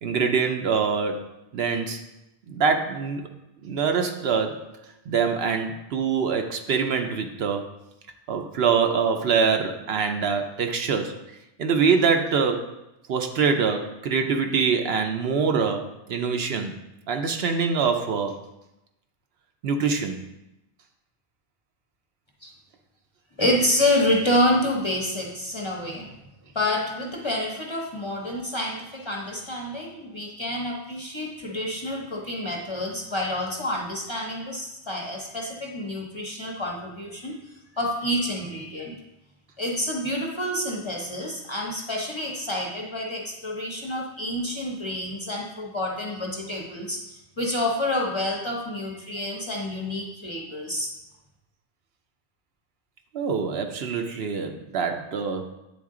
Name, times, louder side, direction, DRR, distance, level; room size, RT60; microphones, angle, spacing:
voice 1, 0.0-1.3 1.5-2.0 2.5-3.2 3.6-4.7 5.1-7.7 8.3-11.2 11.6-12.7 13.1-16.7 17.1-18.4 19.6-20.2 53.1-55.5, right 5 dB, 70° right, 5 dB, 0.8 m, -24 dB
voice 2, 23.4-26.1 26.5-37.4 37.7-39.0 39.6-50.9, left 1 dB, 30° left, -1 dB, 0.7 m, -28 dB
8.7 x 3.8 x 3.7 m, 0.91 s
omnidirectional pair, 1.2 m